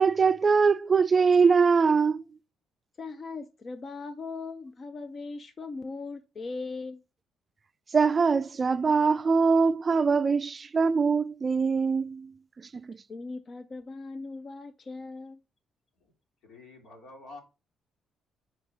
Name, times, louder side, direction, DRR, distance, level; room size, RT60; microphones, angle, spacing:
voice 1, 0.0-2.2 7.9-12.3 12.8-13.0, right 5 dB, 35° right, 0.3 m, -22 dB
voice 2, 3.0-7.0 13.1-15.4, left 3 dB, 45° left, 0.6 m, -39 dB
voice 3, 16.4-17.4, left 2 dB, 85° left, 2.6 m, -48 dB
4.7 x 4.6 x 5.1 m
cardioid pair, 90°, 0 cm